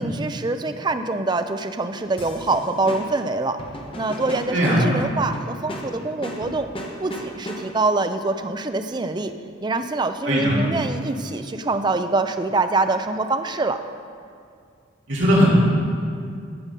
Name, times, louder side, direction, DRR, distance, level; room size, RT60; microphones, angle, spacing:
voice 1, 0.0-3.6 4.0-6.7 7.0-9.3 9.6-13.8, right 3 dB, 20° right, 8 dB, 0.4 m, -25 dB
sound 1, 2.2-7.9, equal, 25° left, 1.0 m, -36 dB
voice 2, 15.1-15.5, equal, 65° right, -6 dB, 3.0 m, -18 dB
15.5 x 5.3 x 5.4 m, 2.3 s
head